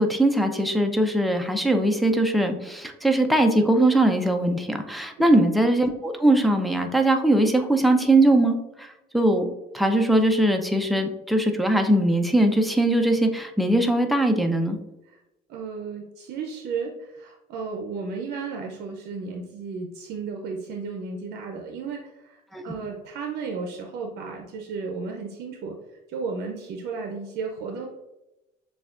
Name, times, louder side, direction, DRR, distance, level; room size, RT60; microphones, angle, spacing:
voice 1, 0.0-8.9 9.1-14.8 22.5-22.6, right 1 dB, ahead, 4 dB, 0.4 m, -21 dB
voice 2, 15.5-25.8 26.1-27.9, right 4 dB, 75° right, 2 dB, 0.5 m, -34 dB
6.7 x 2.3 x 2.4 m, 0.95 s
cardioid pair, 110°, 17 cm